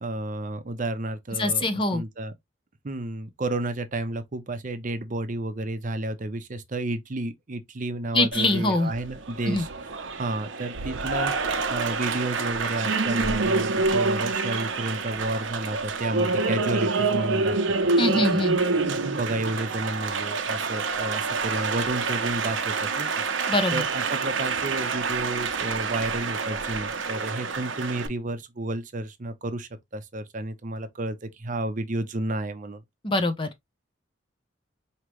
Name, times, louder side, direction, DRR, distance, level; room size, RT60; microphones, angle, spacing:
voice 1, 0.0-2.3 2.8-9.7 10.2-11.3 11.7-17.6 18.1-18.3 18.5-18.8 19.2-23.1 23.7-32.8, right 2 dB, 45° right, 0.6 m, -31 dB
voice 2, 1.4-2.0 8.1-8.9 9.4-9.6 18.0-18.6 23.5-23.8 33.0-33.5, left 2 dB, 25° left, 0.7 m, -23 dB
Applause, 8.3-28.1, right 4 dB, 85° right, 0.7 m, -27 dB
4.8 x 2.9 x 3.0 m
head